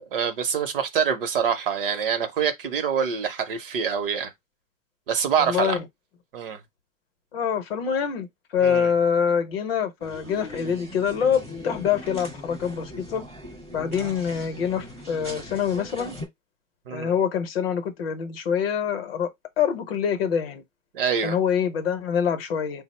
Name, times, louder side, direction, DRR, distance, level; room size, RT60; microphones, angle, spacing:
voice 1, 0.1-4.3 5.1-5.8 6.3-6.6 8.6-8.9 16.9-17.1 20.9-21.4, right 7 dB, 45° right, 0.6 m, -25 dB
voice 2, 5.4-5.8 7.3-8.3 8.5-13.2 13.7-16.2 16.9-20.6 21.2-22.8, left 7 dB, 50° left, 0.7 m, -25 dB
sound 1, 10.0-16.2, equal, 10° right, 0.3 m, -40 dB
3.8 x 2.0 x 4.0 m
supercardioid pair, 170°, 39 cm